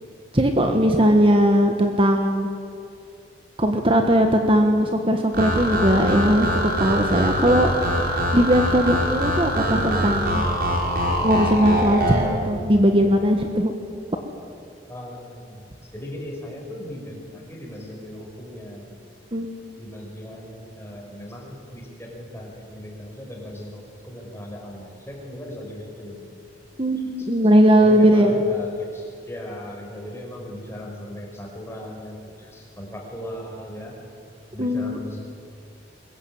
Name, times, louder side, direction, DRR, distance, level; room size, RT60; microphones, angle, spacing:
voice 1, 0.3-2.5 3.6-7.7 8.0-10.5 11.2-13.7 19.3-19.5 26.8-28.4 34.6-35.0, equal, 30° right, 4 dB, 1.5 m, -19 dB
sound 1, 5.3-12.3, equal, 55° right, 5.7 m, -23 dB
voice 2, 14.9-19.0 19.8-26.3 27.2-27.3 27.8-34.0 34.5-35.2, equal, 15° left, -1 dB, 5.5 m, -38 dB
22.5 x 20.5 x 8.9 m, 2.4 s
head